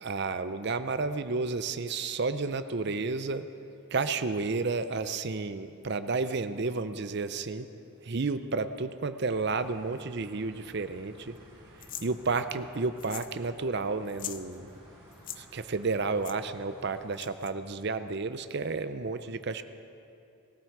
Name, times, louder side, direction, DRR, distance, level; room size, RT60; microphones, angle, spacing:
voice 1, 0.0-3.5 3.9-7.7 8.0-11.3 12.0-14.7 15.4-19.6, right 4 dB, 50° right, 11 dB, 0.6 m, -31 dB
sound 1, 9.3-17.1, equal, 20° right, 5.0 m, -55 dB
sound 2, 11.8-12.1 13.0-13.4 13.6-13.7 14.1-14.4 15.1-15.4 16.2-16.4 17.1-17.5, left 10 dB, 40° left, 0.6 m, -41 dB
20.0 x 15.5 x 4.7 m, 2.7 s
head